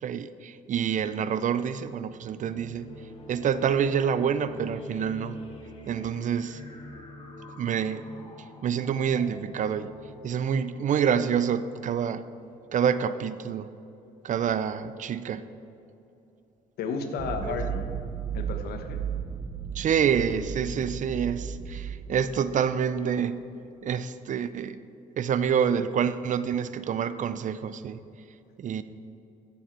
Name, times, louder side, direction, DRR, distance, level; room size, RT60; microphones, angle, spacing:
voice 1, 0.0-2.9 3.3-5.4 5.9-6.6 7.6-8.0 8.6-9.9 10.2-12.2 12.7-13.7 14.2-15.4 17.4-17.5 19.7-23.4 23.8-24.8 25.2-28.0 28.6-28.8, right 7 dB, 50° right, 14 dB, 0.5 m, -27 dB
sound 1, 2.1-12.3, left 1 dB, 35° left, 2.1 m, -46 dB
voice 2, 16.8-17.8 18.3-19.0, left 5 dB, 80° left, 6 dB, 1.2 m, -33 dB
sound 2, 17.2-22.9, right 8 dB, 35° right, 0.9 m, -35 dB
15.0 x 7.0 x 4.6 m, 2.8 s
cardioid pair, 80°, 16 cm